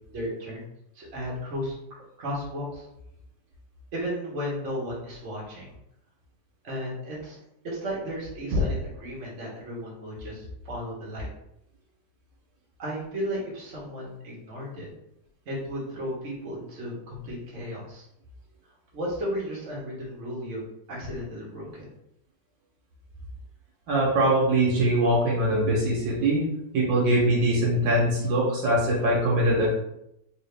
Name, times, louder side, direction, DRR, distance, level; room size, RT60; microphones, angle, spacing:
voice 1, 0.1-0.6 0.9-2.9 3.9-5.8 6.6-7.4 7.6-11.3 12.8-14.9 15.4-18.0 18.9-21.9, equal, 45° right, -5 dB, 1.4 m, -33 dB
voice 2, 23.9-26.4 26.7-29.7, right 1 dB, 85° right, -4 dB, 1.7 m, -22 dB
3.9 x 2.7 x 3.3 m, 0.80 s
omnidirectional pair, 2.0 m